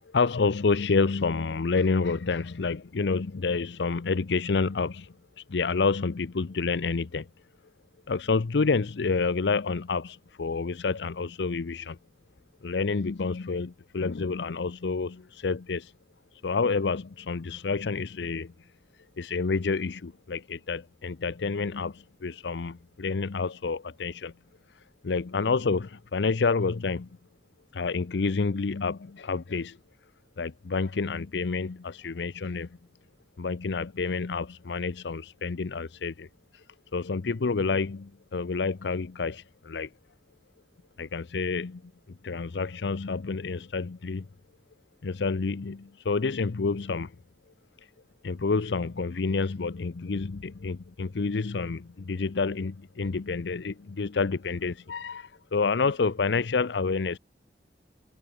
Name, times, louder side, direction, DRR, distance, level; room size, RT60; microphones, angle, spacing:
voice 1, 0.0-7.3 8.1-12.0 12.6-15.9 16.4-18.7 19.2-24.3 24.7-27.1 27.7-29.8 30.4-32.7 33.4-36.3 36.5-36.6 36.9-39.9 41.0-41.8 42.2-44.3 45.0-47.1 48.2-57.2, left 4 dB, 80° left, 0.6 m, -29 dB
head